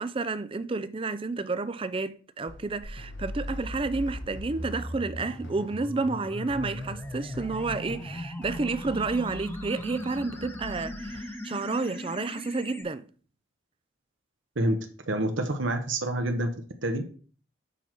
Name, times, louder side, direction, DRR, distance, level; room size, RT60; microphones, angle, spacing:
voice 1, 0.0-13.0, right 3 dB, 25° right, 0.4 m, -30 dB
sound 1, 2.5-11.2, left 1 dB, 70° left, 1.2 m, -46 dB
sound 2, 2.8-12.8, left 1 dB, 10° left, 0.8 m, -38 dB
voice 2, 15.1-16.5 16.8-17.0, right 1 dB, 70° right, 1.0 m, -27 dB
7.0 x 5.8 x 4.5 m
head